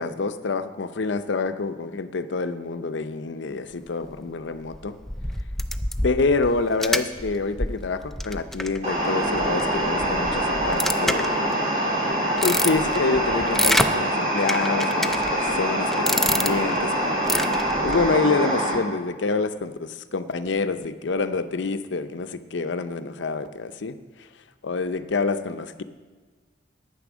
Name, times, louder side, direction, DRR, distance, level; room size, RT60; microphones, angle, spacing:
voice 1, 0.0-5.0 6.0-11.4 12.4-17.4 17.8-24.0 24.6-25.8, left 3 dB, 70° left, 11 dB, 0.6 m, -27 dB
sound 1, 4.7-11.6 12.1-13.9 14.5-15.6 15.9-16.8 17.2-18.1, left 1 dB, ahead, 0.4 m, -27 dB
sound 2, 8.8-18.7, right 1 dB, 40° right, 3.3 m, -24 dB
10.5 x 9.1 x 6.1 m, 1.5 s
head